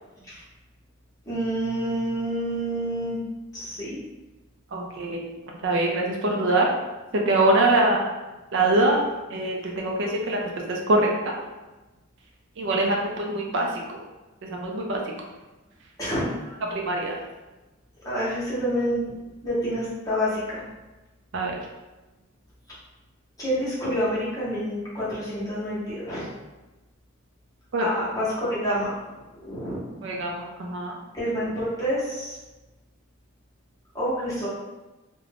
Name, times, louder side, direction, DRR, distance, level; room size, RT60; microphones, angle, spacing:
voice 1, 1.3-3.2 3.5-4.0 16.0-16.6 18.0-19.1 19.4-20.6 23.4-26.3 27.8-29.8 31.1-32.4 33.9-34.5, equal, 15° left, -9 dB, 0.9 m, -28 dB
voice 2, 4.7-5.2 5.6-6.7 7.3-8.0 8.5-9.0 9.3-11.4 12.6-13.7 14.4-15.0 16.7-17.1 21.3-21.5 27.7-27.9 30.0-30.9, right 2 dB, 60° right, 0 dB, 0.4 m, -23 dB
2.4 x 2.1 x 3.3 m, 1.1 s
head